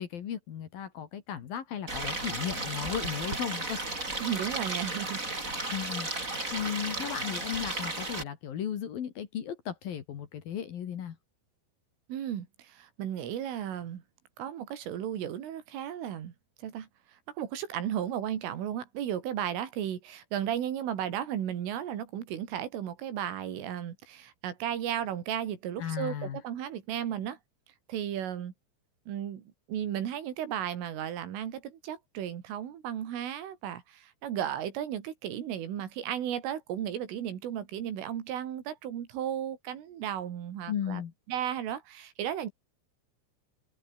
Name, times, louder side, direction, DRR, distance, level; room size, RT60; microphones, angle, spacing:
voice 1, 0.0-3.8 5.7-11.2 25.8-26.4 40.7-41.1, left 9 dB, 55° left, 3.3 m, -35 dB
Stream, 1.9-8.2, right 2 dB, 15° right, 5.4 m, -34 dB
voice 2, 4.2-5.3 12.1-14.0 14.4-16.3 16.6-27.4 27.9-28.5 29.1-41.0 41.3-42.5, right 10 dB, 80° right, 5.3 m, -34 dB
omnidirectional pair, 5.7 m